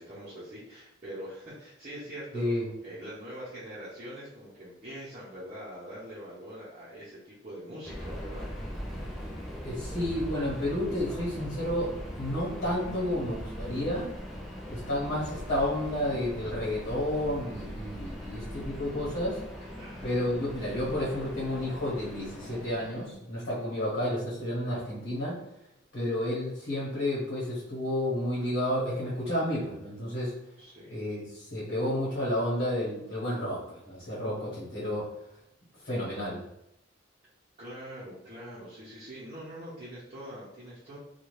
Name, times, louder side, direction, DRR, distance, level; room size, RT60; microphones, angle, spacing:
voice 1, 0.0-8.5 18.2-18.5 19.6-20.0 23.4-23.8 30.6-30.9 37.6-41.0, equal, 35° right, -11 dB, 0.8 m, -44 dB
voice 2, 2.3-2.7 9.6-11.9 12.2-14.1 14.7-19.4 20.0-25.4 25.9-30.3 30.9-35.1 35.8-36.4, left 1 dB, 60° left, -8 dB, 1.2 m, -31 dB
Subway metro underground, 7.8-23.2, equal, ahead, 0.4 m, -40 dB
2.8 x 2.4 x 3.1 m, 0.81 s
head